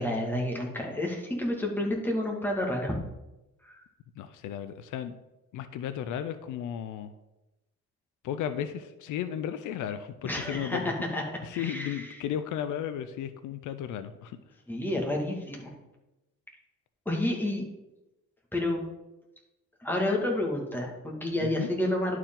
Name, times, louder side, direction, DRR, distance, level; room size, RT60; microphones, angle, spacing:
voice 1, 0.0-3.0 3.6-3.8 10.2-11.2 11.5-12.2 14.7-15.7 17.1-17.6 18.5-18.8 19.8-22.2, left 1 dB, 5° left, -1 dB, 1.9 m, -30 dB
voice 2, 4.2-5.2 5.5-7.1 8.2-10.9 11.4-14.4 21.4-21.7, left 9 dB, 80° left, 11 dB, 0.6 m, -34 dB
11.5 x 4.6 x 3.8 m, 0.98 s
cardioid pair, 90°, 30 cm